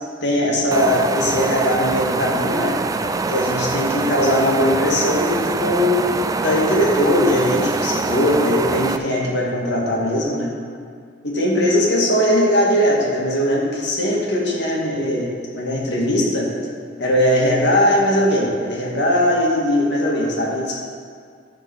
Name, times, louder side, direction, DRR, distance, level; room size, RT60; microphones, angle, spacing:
voice 1, 0.2-2.7 3.3-10.5 11.2-16.5 17.0-20.8, equal, 65° left, -3 dB, 2.0 m, -19 dB
sound 1, 0.7-9.0, right 3 dB, 20° right, 0.3 m, -24 dB
13.0 x 4.5 x 5.4 m, 2.1 s
head